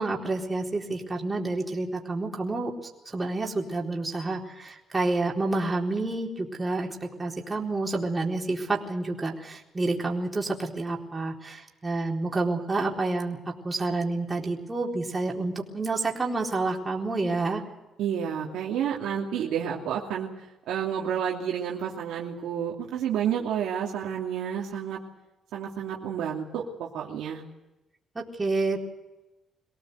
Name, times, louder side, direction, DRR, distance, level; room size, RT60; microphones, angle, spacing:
voice 1, 0.0-2.7 3.1-17.6 28.2-28.8, right 2 dB, 20° right, -1 dB, 4.2 m, -29 dB
voice 2, 18.0-20.3 20.7-25.0 25.5-27.4, right 8 dB, 85° right, -2 dB, 2.8 m, -30 dB
24.0 x 17.5 x 8.1 m, 1.0 s
cardioid pair, 90°, 0 cm